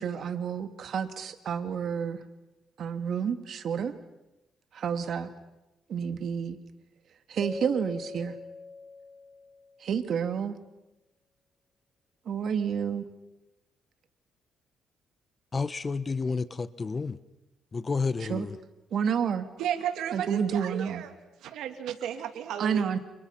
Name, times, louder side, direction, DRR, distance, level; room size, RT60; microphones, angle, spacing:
voice 1, 0.0-2.2 2.8-3.9 4.7-5.3 5.9-6.6 7.3-8.3 9.8-10.5 12.3-13.0 18.3-18.4 18.9-19.5 20.1-21.0 22.6-23.0, right 7 dB, 60° right, 2.4 m, -29 dB
Keyboard (musical), 7.4-9.9, left 3 dB, 10° left, 2.4 m, -42 dB
voice 2, 15.5-17.2 17.7-18.6, left 4 dB, 30° left, 1.1 m, -30 dB
voice 3, 19.6-21.1 21.4-23.0, right 10 dB, 85° right, 2.7 m, -34 dB
30.0 x 29.5 x 5.9 m
cardioid pair, 90°, 0 cm